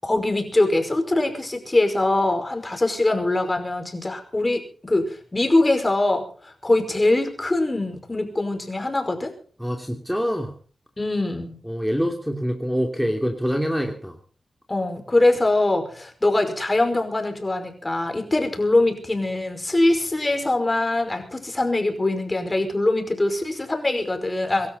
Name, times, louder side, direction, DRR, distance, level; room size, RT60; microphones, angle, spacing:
voice 1, 0.0-9.3 11.0-11.6 14.7-24.7, left 2 dB, 25° left, 6 dB, 5.2 m, -22 dB
voice 2, 9.6-10.5 11.6-14.2, equal, ahead, 3 dB, 2.8 m, -25 dB
25.0 x 13.0 x 4.1 m, 0.41 s
cardioid pair, 70°, 0 cm